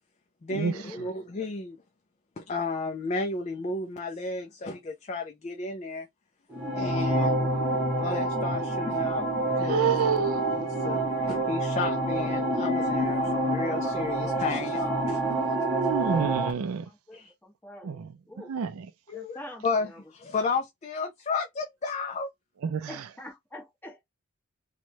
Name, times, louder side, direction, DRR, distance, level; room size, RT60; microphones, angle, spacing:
voice 1, 0.4-1.8 2.4-6.1 6.8-7.5 7.9-10.0 10.5-15.5 15.8-16.2 17.1-17.3 19.1-22.3, left 3 dB, 30° left, 0.4 m, -33 dB
sound 1, 6.5-16.5, right 1 dB, 5° right, 0.9 m, -27 dB
voice 2, 9.7-10.4 15.3-16.9 17.8-18.1 18.5-18.7 22.6-22.9, right 6 dB, 75° right, 0.4 m, -28 dB
voice 3, 15.4-16.0 16.8-18.0 18.3-18.5 19.1-19.6 19.9-20.0 22.9-24.0, left 1 dB, 10° left, 1.2 m, -46 dB
3.0 x 2.2 x 2.7 m
head